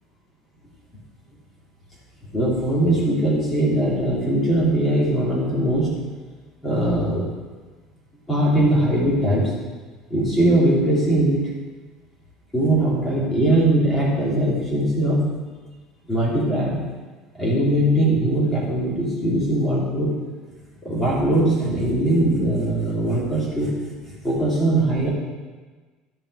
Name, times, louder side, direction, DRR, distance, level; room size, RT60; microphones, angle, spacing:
voice 1, 2.3-5.9 6.6-7.3 8.3-9.5 10.1-11.5 12.5-15.3 16.1-16.8 17.3-20.1 20.8-23.7 24.2-25.1, right 1 dB, 15° left, -6 dB, 2.9 m, -20 dB
13.5 x 5.5 x 4.8 m, 1.4 s
cardioid pair, 160°, 0 cm